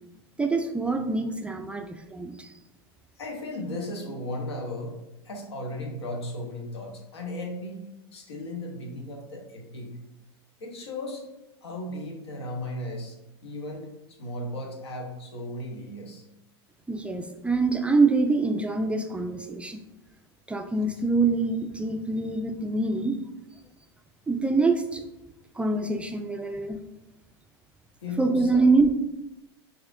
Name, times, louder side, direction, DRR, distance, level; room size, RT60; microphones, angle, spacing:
voice 1, 0.4-2.5 16.9-19.8 20.5-23.2 24.3-25.0 25.6-26.8 28.2-28.9, right 3 dB, 10° right, 4 dB, 0.3 m, -25 dB
voice 2, 3.2-5.0 5.2-7.8 8.1-10.0 10.6-11.2 11.6-13.2 13.4-13.9 14.2-16.2 28.0-28.6, left 1 dB, 80° left, 2 dB, 0.9 m, -36 dB
5.9 x 2.7 x 2.5 m, 0.95 s
hypercardioid pair, 95°, 14 cm